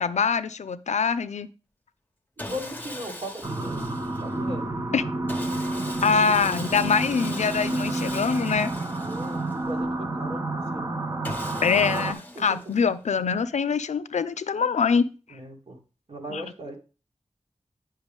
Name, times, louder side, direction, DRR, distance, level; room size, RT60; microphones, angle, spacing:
voice 1, 0.0-1.5 4.9-5.0 6.0-8.7 11.6-15.1 16.3-16.4, left 5 dB, 85° left, 0.4 m, -24 dB
Sawing, 2.4-4.4 5.3-9.8 11.2-13.1, left 1 dB, 15° left, 0.9 m, -40 dB
voice 2, 2.4-3.9 4.2-4.6 5.7-5.9 9.0-11.0 12.3-12.4 15.3-15.8 16.1-16.8, equal, 60° right, 1.6 m, -38 dB
sound 1, 3.4-12.1, right 2 dB, 25° right, 0.8 m, -30 dB
8.2 x 5.7 x 3.5 m
cardioid pair, 40°, 12 cm